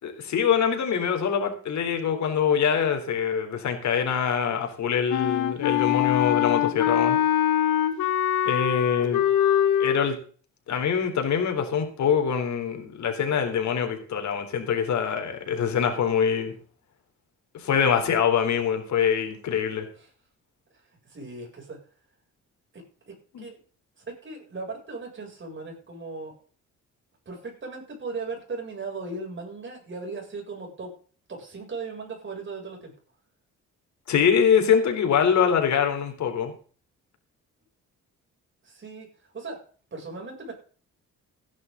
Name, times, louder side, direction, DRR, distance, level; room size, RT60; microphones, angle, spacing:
voice 1, 0.0-7.2 8.5-9.2 9.8-10.2 10.7-16.5 17.5-19.9 23.3-23.5 34.1-36.5, left 7 dB, 70° left, 5 dB, 3.9 m, -24 dB
Wind instrument woodwind instrument, 5.1-10.0, left 11 dB, 90° left, 1.5 m, -23 dB
voice 2, 21.0-21.8 22.7-23.6 24.0-26.3 27.3-30.9 31.3-32.9 38.6-39.1 39.3-39.6 39.9-40.5, right 3 dB, 40° right, 0 dB, 7.7 m, -37 dB
16.5 x 11.0 x 4.1 m, 0.42 s
cardioid pair, 90°, 30 cm